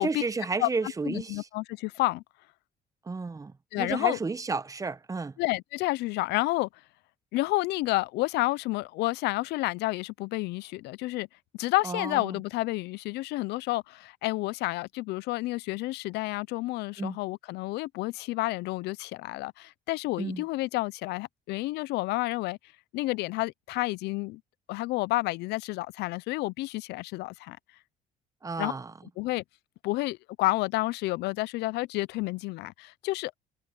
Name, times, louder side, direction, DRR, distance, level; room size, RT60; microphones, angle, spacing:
voice 1, 0.0-1.5 3.1-5.4 11.8-12.4 17.0-17.2 20.2-20.4 28.4-28.9, right 4 dB, 20° right, 0.8 m, -32 dB
voice 2, 1.1-2.2 3.7-4.2 5.4-6.7 7.3-11.3 11.5-22.6 22.9-24.4 24.7-27.6 28.6-28.7 29.2-29.4 29.8-33.3, left 19 dB, 80° left, 0.5 m, -30 dB
cardioid pair, 110°, 17 cm